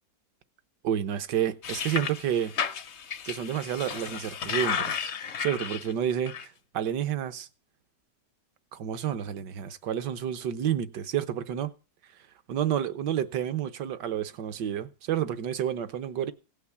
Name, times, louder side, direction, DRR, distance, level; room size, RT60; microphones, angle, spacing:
voice 1, 0.8-2.5 3.3-5.1 5.4-7.5 8.7-11.7 12.5-16.3, right 10 dB, 70° right, 1.5 m, -30 dB
sound 1, 1.6-5.9 6.3-6.4, left 7 dB, 50° left, 0.9 m, -33 dB
17.0 x 5.9 x 8.4 m
omnidirectional pair, 2.0 m